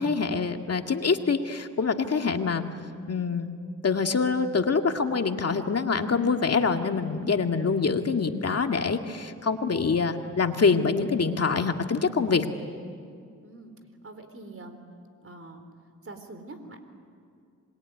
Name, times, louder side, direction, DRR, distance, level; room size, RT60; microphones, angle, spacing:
voice 1, 0.0-2.6 3.1-3.5 3.8-12.5, left 5 dB, 50° left, 5 dB, 2.2 m, -25 dB
voice 2, 13.4-13.7 14.0-14.8 15.2-15.6 16.0-16.8, right 2 dB, 45° right, 8 dB, 4.2 m, -44 dB
26.5 x 22.0 x 9.8 m, 2.3 s
cardioid pair, 55°, 32 cm